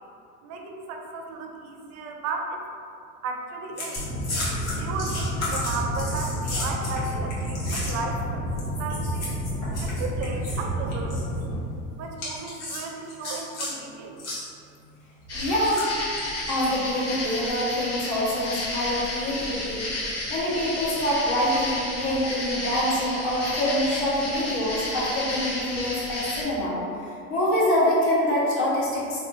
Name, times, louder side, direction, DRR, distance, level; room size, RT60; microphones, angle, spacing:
voice 1, 0.4-2.6 3.2-4.0 4.8-8.4 8.8-9.3 9.8-11.3 12.0-14.2, right 4 dB, 40° right, 2 dB, 0.5 m, -34 dB
sound 1, 3.8-8.2 8.6-10.6 10.9-11.2 12.2-13.7 14.2-14.4 15.4-16.7 17.3-17.5, left 2 dB, 80° left, 1.1 m, -34 dB
sound 2, 4.0-11.6, equal, 10° left, 0.6 m, -30 dB
voice 2, 15.3-15.8 16.5-29.2, left 1 dB, 60° left, -7 dB, 1.2 m, -25 dB
sound 3, 15.3-26.4, left 1 dB, 35° left, 1.0 m, -32 dB
3.4 x 2.6 x 2.5 m, 2.4 s
hypercardioid pair, 90°, 42 cm